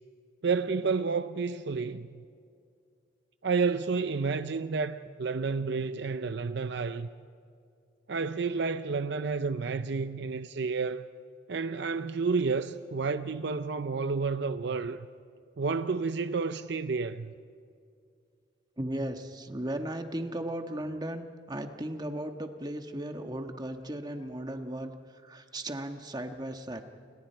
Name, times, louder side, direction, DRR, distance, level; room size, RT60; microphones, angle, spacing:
voice 1, 0.4-2.2 3.4-7.1 8.1-11.1 11.5-15.1 15.6-17.3, right 4 dB, 60° right, 0.6 m, -30 dB
voice 2, 18.8-24.9 25.2-26.8, right 1 dB, 20° right, 1.4 m, -36 dB
29.5 x 28.5 x 4.6 m
head